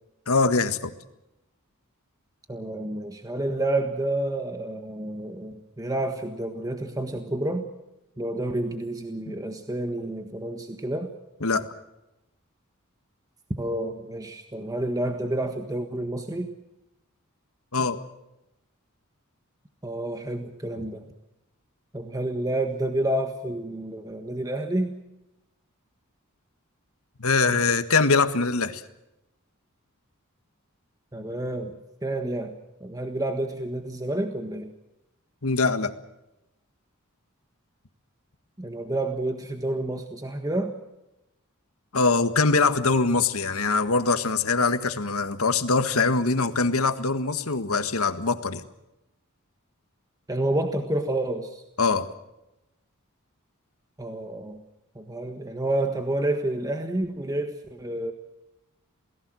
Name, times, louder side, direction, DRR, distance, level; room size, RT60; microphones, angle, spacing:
voice 1, 0.3-0.9 9.3-9.4 11.4-11.7 17.7-18.0 27.2-28.8 35.4-35.9 41.9-48.6 51.8-52.1, left 4 dB, 85° left, 9 dB, 1.7 m, -23 dB
voice 2, 2.5-7.7 8.2-11.1 13.5-16.5 19.8-21.1 21.9-25.0 31.1-31.7 32.0-34.7 38.6-40.7 50.3-51.6 54.0-54.6 54.9-58.1, right 1 dB, 15° right, 5 dB, 1.5 m, -29 dB
28.0 x 18.5 x 6.4 m, 0.92 s
head